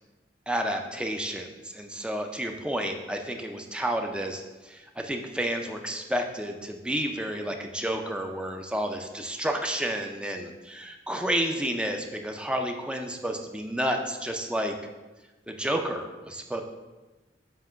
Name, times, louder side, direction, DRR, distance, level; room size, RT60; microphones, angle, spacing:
voice 1, 0.5-14.8 15.5-16.6, right 1 dB, 5° right, 4 dB, 0.4 m, -31 dB
7.3 x 2.9 x 5.6 m, 1.1 s
head